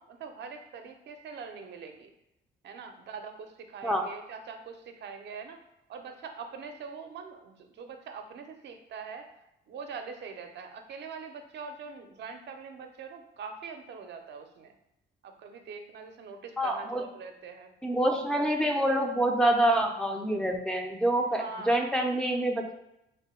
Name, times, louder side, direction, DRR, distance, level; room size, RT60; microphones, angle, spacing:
voice 1, 0.0-2.1 2.6-5.6 5.9-9.3 9.7-14.7 15.2-17.7 21.3-21.8, right 5 dB, 60° right, 5 dB, 0.5 m, -43 dB
voice 2, 16.6-17.0 17.8-22.7, right 1 dB, 5° left, 2 dB, 0.4 m, -26 dB
3.3 x 2.2 x 4.2 m, 0.84 s
cardioid pair, 90°, 20 cm